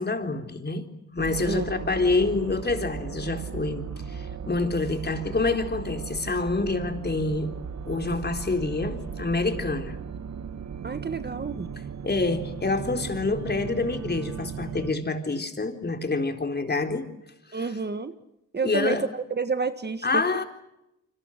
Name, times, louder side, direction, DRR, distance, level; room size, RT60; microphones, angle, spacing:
voice 1, 0.0-7.5 7.9-10.0 12.0-17.1 18.6-19.0 20.0-20.4, left 3 dB, 30° left, 4.0 m, -27 dB
sound 1, 1.2-14.9, right 7 dB, 60° right, 1.7 m, -36 dB
voice 2, 10.8-11.7 17.5-18.1 18.5-20.3, right 4 dB, 35° right, 1.5 m, -29 dB
28.0 x 25.5 x 6.6 m
cardioid pair, 90°, 31 cm